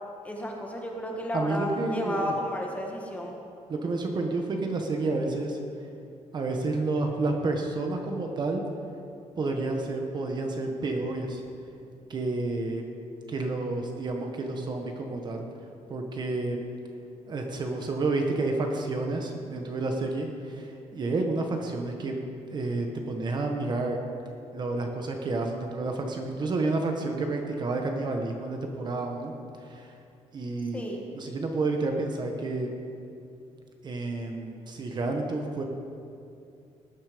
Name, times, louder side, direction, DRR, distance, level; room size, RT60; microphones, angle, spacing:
voice 1, 0.2-3.4 30.7-31.0, left 1 dB, 10° left, 0 dB, 1.5 m, -32 dB
voice 2, 1.3-2.4 3.7-5.6 6.3-8.6 9.4-11.4 12.1-12.8 13.3-15.4 15.9-16.6 17.3-22.2 22.5-24.0 24.5-29.3 29.6-29.9 30.3-30.8 31.1-32.7 33.8-35.6, right 2 dB, 35° right, 3 dB, 1.2 m, -30 dB
19.0 x 9.6 x 5.1 m, 2.6 s
cardioid pair, 175°, 12 cm